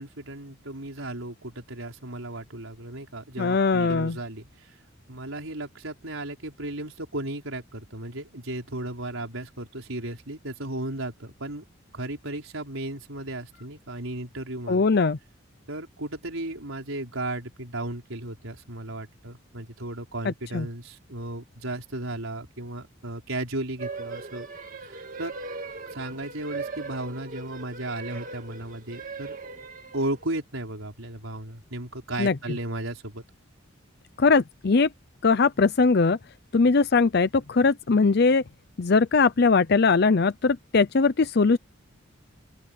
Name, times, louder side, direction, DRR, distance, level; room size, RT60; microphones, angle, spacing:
voice 1, 0.0-4.8 5.1-11.6 11.9-14.8 15.7-24.5 24.8-25.4 25.9-29.4 29.9-33.2, right 1 dB, 85° right, 4.8 m, -35 dB
voice 2, 3.4-4.2 14.7-15.2 20.2-20.7 32.2-32.3 34.2-34.9 35.2-36.2 36.5-38.4 38.8-41.6, left 4 dB, 50° left, 0.6 m, -21 dB
sound 1, 23.8-30.4, right 4 dB, 40° right, 2.3 m, -39 dB
open air
head